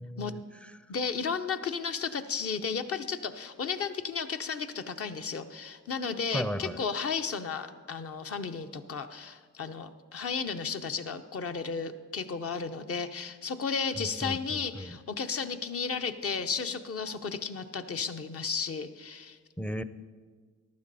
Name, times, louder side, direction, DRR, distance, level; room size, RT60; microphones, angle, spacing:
voice 1, 0.0-0.7 6.3-6.8 14.0-15.0 19.6-19.8, equal, 5° left, 13 dB, 0.5 m, -36 dB
voice 2, 0.9-19.4, left 5 dB, 50° left, 8 dB, 0.9 m, -34 dB
15.0 x 11.5 x 4.2 m, 1.6 s
cardioid pair, 90°, 30 cm